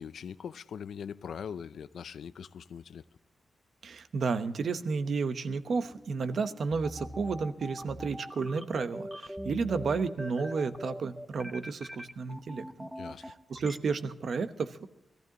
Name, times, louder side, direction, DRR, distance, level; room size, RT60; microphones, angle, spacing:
voice 1, 0.0-3.0 13.0-13.2, left 7 dB, 90° left, 0.5 m, -41 dB
voice 2, 3.8-12.9 13.2-14.9, right 4 dB, 60° right, 0.9 m, -32 dB
sound 1, 5.3-13.8, equal, ahead, 0.7 m, -41 dB
21.5 x 14.5 x 2.9 m
wide cardioid pair, 160°, 0 cm